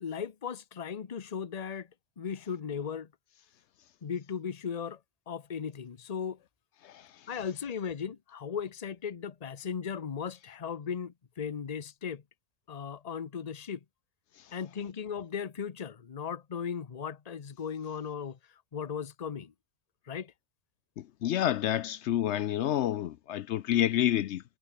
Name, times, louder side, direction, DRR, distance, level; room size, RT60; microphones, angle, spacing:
voice 1, 0.0-1.9 2.2-3.1 4.0-5.0 5.3-6.4 7.3-12.2 12.7-13.8 14.5-18.4 18.7-19.5 20.1-20.3, left 7 dB, 40° left, 0.9 m, -37 dB
voice 2, 21.2-24.4, left 11 dB, 75° left, 0.9 m, -28 dB
omnidirectional pair, 1.2 m